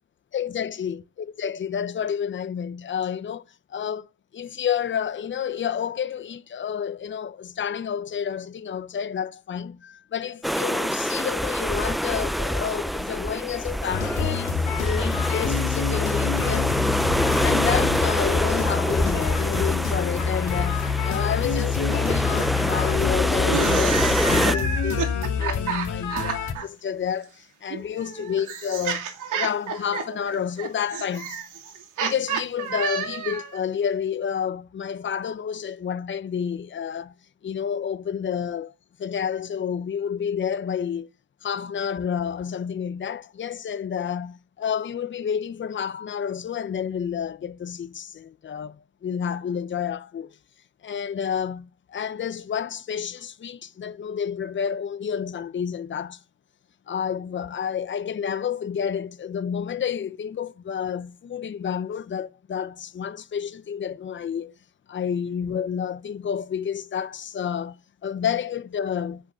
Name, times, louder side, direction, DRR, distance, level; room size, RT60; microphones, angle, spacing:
voice 1, 0.3-4.1 4.3-16.9 17.4-31.4 32.0-37.1 37.4-38.7 39.0-41.1 41.4-48.8 49.0-50.3 50.8-56.2 56.9-64.5 64.9-69.2, left 8 dB, 40° left, 0.8 m, -30 dB
sound 1, 10.4-24.6, equal, ahead, 0.5 m, -26 dB
sound 2, 13.9-26.5, left 6 dB, 85° left, 2.7 m, -26 dB
sound 3, 23.4-26.6 27.7-33.6, right 7 dB, 85° right, 2.6 m, -30 dB
9.7 x 6.1 x 6.0 m
cardioid pair, 90°, 30 cm